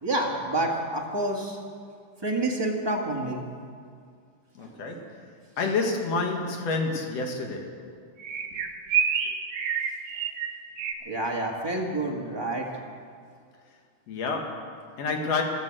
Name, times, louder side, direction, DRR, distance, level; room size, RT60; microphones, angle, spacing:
voice 1, 0.0-1.6 2.2-3.4 11.0-12.7, right 2 dB, 15° right, -1 dB, 1.0 m, -28 dB
voice 2, 4.6-5.2 5.6-7.9 14.1-15.4, left 4 dB, 55° left, 3 dB, 2.6 m, -29 dB
sound 1, 5.6-5.9 8.2-10.9, right 7 dB, 60° right, 1.9 m, -28 dB
14.0 x 13.0 x 7.7 m, 2.2 s
omnidirectional pair, 3.7 m